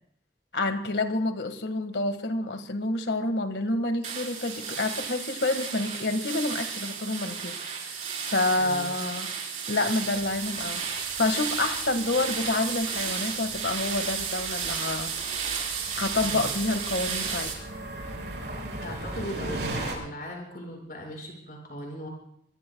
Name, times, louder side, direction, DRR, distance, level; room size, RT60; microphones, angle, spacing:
voice 1, 0.5-9.3 9.7-10.8 11.2-15.1 16.0-17.5, left 2 dB, 80° left, 7 dB, 1.8 m, -28 dB
sound 1, 4.0-17.5, right 6 dB, 45° right, 4.3 m, -33 dB
voice 2, 8.6-8.9 16.2-16.5 18.8-22.1, equal, 55° left, 0 dB, 6.0 m, -38 dB
sound 2, 10.1-19.9, right 1 dB, 70° right, 7.8 m, -39 dB
26.5 x 23.0 x 2.4 m, 0.70 s
head